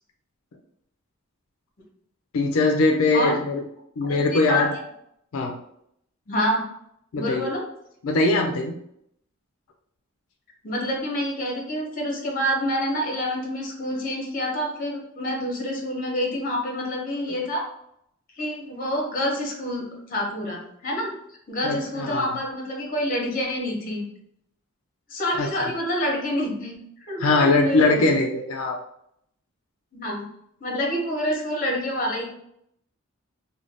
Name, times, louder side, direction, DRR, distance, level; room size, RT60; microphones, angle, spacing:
voice 1, 2.3-3.6 4.0-4.7 5.3-5.5 7.1-7.5 8.0-8.7 21.6-22.3 25.4-25.5 27.2-28.8, left 3 dB, 85° left, 2 dB, 0.4 m, -21 dB
voice 2, 4.0-4.6 6.3-6.6 7.2-7.6 10.6-17.6 18.4-21.1 21.5-24.0 25.1-28.1 29.9-30.2 30.6-32.3, equal, 40° left, 0 dB, 0.8 m, -27 dB
2.5 x 2.2 x 3.3 m, 0.73 s
head